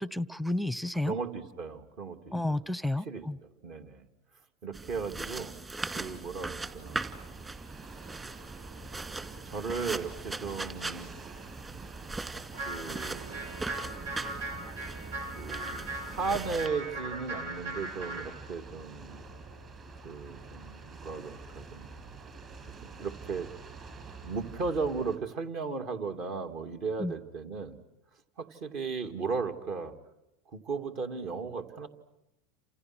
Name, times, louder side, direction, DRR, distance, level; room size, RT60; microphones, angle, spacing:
voice 1, 0.0-1.1 2.3-3.4 27.0-27.1, left 1 dB, ahead, 20 dB, 0.9 m, -31 dB
voice 2, 1.0-2.6 3.0-4.1 4.6-5.6 5.9-7.1 9.5-11.1 12.6-13.5 14.4-14.7 15.3-19.2 20.0-21.9 22.8-23.5 24.2-27.8 28.4-29.9 30.5-31.9, right 4 dB, 55° right, 7 dB, 2.9 m, -36 dB
sound 1, 4.7-16.7, right 3 dB, 20° right, 2.4 m, -40 dB
sound 2, 6.8-25.2, right 4 dB, 40° right, 7.8 m, -47 dB
sound 3, 12.5-18.3, right 2 dB, 85° right, 6.8 m, -39 dB
29.5 x 28.0 x 6.4 m, 0.90 s
hypercardioid pair, 100°, 0 cm